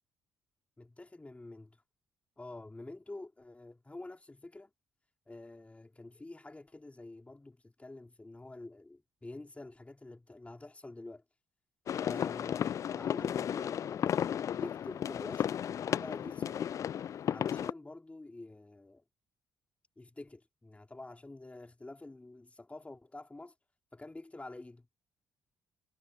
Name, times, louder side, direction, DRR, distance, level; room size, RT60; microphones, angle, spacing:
voice 1, 0.8-1.8 2.4-4.7 5.3-11.2 12.0-12.7 12.9-16.7 17.3-19.0 20.0-23.5 23.9-24.9, left 2 dB, 15° left, 4.0 m, -48 dB
sound 1, 11.9-17.7, left 9 dB, 45° left, 0.3 m, -34 dB
figure-of-eight pair, 45°, 8 cm